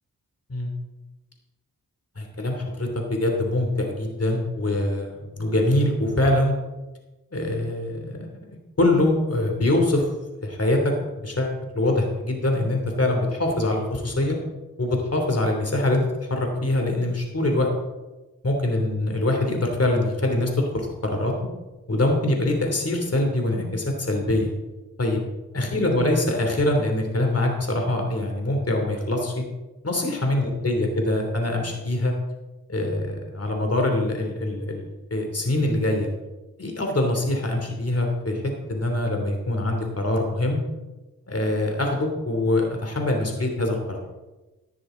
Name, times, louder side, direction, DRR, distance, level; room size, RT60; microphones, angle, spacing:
voice 1, 2.2-6.5 7.3-10.1 10.4-10.9 11.2-14.4 14.8-16.0 16.3-17.7 18.4-21.3 21.9-24.5 25.0-25.2 25.5-29.4 29.8-32.1 32.7-36.1 36.6-38.4 38.7-40.6 41.3-44.0, left 1 dB, 40° left, 2 dB, 3.1 m, -24 dB
13.5 x 12.0 x 3.9 m, 1.1 s
cardioid pair, 40°, 36 cm